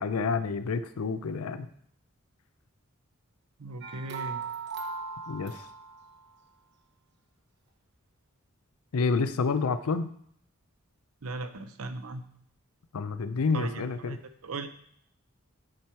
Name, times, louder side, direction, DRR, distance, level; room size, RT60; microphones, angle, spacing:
voice 1, 0.0-1.7 5.3-5.6 8.9-10.1 12.9-14.2, left 4 dB, 90° left, 11 dB, 0.5 m, -29 dB
voice 2, 3.6-4.4 11.2-12.2 13.5-14.2 14.4-14.7, right 3 dB, 85° right, 9 dB, 0.7 m, -37 dB
sound 1, 3.8-6.3, right 5 dB, 55° right, 0.9 m, -38 dB
10.5 x 4.5 x 4.5 m, 0.68 s
head